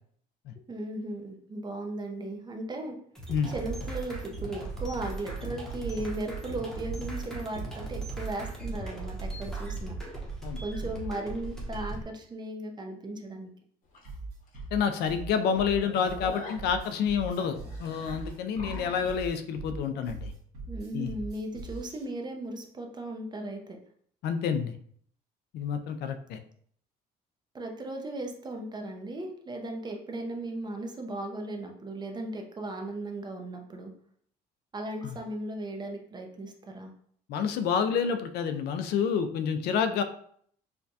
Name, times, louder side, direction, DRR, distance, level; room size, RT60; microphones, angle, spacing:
voice 1, 0.7-3.0 3.5-10.0 10.6-13.5 20.7-23.8 27.5-33.9 34.7-36.9, right 2 dB, 25° right, 3 dB, 0.6 m, -36 dB
sound 1, 3.2-12.0, right 3 dB, 5° left, 0.9 m, -37 dB
sound 2, 13.9-14.1 14.5-14.6 15.0-15.1 15.5-19.2, left 2 dB, 55° left, 0.9 m, -43 dB
sound 3, 14.0-22.0, right 3 dB, 80° right, 1.4 m, -41 dB
voice 2, 14.7-20.3 20.9-21.1 24.2-24.7 25.5-26.4 35.0-35.2 37.3-40.0, left 7 dB, 75° left, 9 dB, 0.4 m, -28 dB
4.3 x 2.3 x 2.7 m, 0.62 s
cardioid pair, 110°, 17 cm